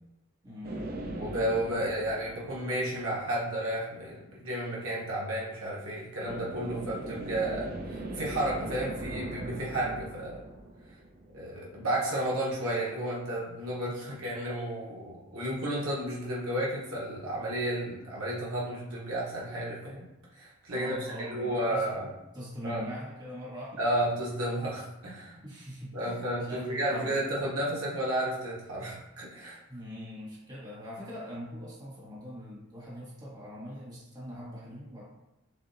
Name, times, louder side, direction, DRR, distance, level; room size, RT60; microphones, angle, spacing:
voice 1, 0.4-0.9 20.7-21.9 22.3-23.9 25.4-27.2 29.7-35.0, equal, 20° right, -7 dB, 1.6 m, -42 dB
sound 1, 0.6-3.4 6.2-11.6, right 2 dB, 45° right, 0.6 m, -40 dB
voice 2, 1.2-10.5 11.3-20.1 20.3-21.0 21.3-22.1 22.6-22.8 23.8-25.4 25.9-29.6, right 1 dB, 75° right, -5 dB, 1.1 m, -32 dB
6.9 x 2.8 x 2.7 m, 1.0 s
head